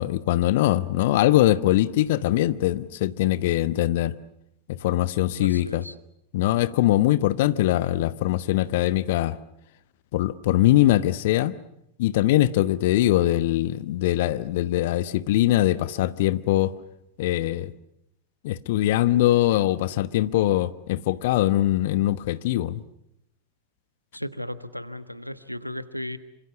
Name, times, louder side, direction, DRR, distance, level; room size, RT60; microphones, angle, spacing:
voice 1, 0.0-4.1 4.8-5.8 6.3-9.4 10.1-11.5 12.0-16.7 17.2-17.7 18.4-22.8, left 14 dB, 50° left, 1.1 m, -22 dB
voice 2, 5.3-5.9 24.1-26.2, left 1 dB, 90° right, 1.3 m, -35 dB
27.5 x 26.0 x 7.2 m
figure-of-eight pair, 90°, 0 cm